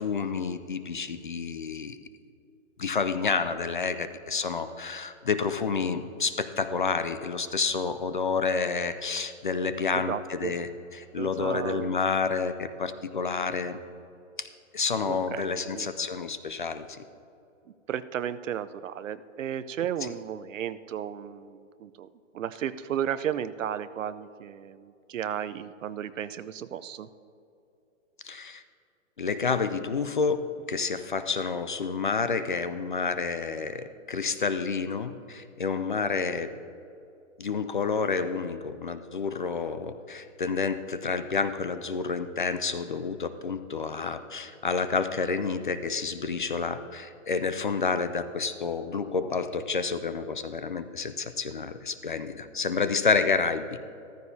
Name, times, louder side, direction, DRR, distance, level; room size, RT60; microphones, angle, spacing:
voice 1, 0.0-2.0 2.8-13.8 14.4-14.5 14.7-16.9 28.2-28.6 29.2-30.4 30.7-36.5 37.4-54.0, left 5 dB, 40° left, 11 dB, 0.4 m, -29 dB
voice 2, 9.9-10.6 11.2-12.0 15.0-15.9 17.9-22.1 22.3-27.1, right 9 dB, 75° right, 14 dB, 0.6 m, -34 dB
14.5 x 14.0 x 2.7 m, 2.7 s
hypercardioid pair, 175°, 39 cm